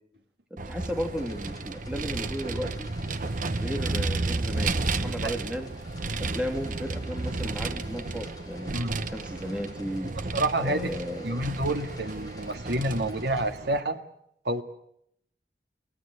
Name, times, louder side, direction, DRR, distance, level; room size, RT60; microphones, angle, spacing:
voice 1, 0.5-2.9 3.5-5.7 6.2-8.7 9.1-10.1 10.6-11.4, equal, 5° right, 2.9 m, -34 dB
Vehicle, 0.6-13.8, right 3 dB, 50° right, 1.0 m, -32 dB
sound 1, 0.8-13.5, left 3 dB, 25° left, 3.7 m, -52 dB
voice 2, 5.1-5.4 8.7-9.1 10.3-10.9 11.2-14.0 14.5-14.6, right 1 dB, 70° right, 2.0 m, -28 dB
24.0 x 19.0 x 9.4 m
head